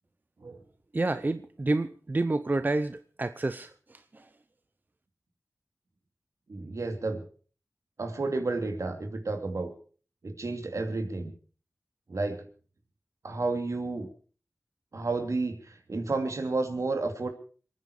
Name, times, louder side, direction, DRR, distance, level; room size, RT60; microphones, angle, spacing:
voice 1, 0.9-4.3, right 2 dB, 35° right, 11 dB, 0.7 m, -29 dB
voice 2, 6.5-7.2 8.0-9.7 10.2-11.3 12.1-12.4 13.2-14.1 14.9-17.3, right 3 dB, 70° right, 5 dB, 2.7 m, -31 dB
27.0 x 9.4 x 4.8 m, 0.41 s
wide cardioid pair, 85°, 6 cm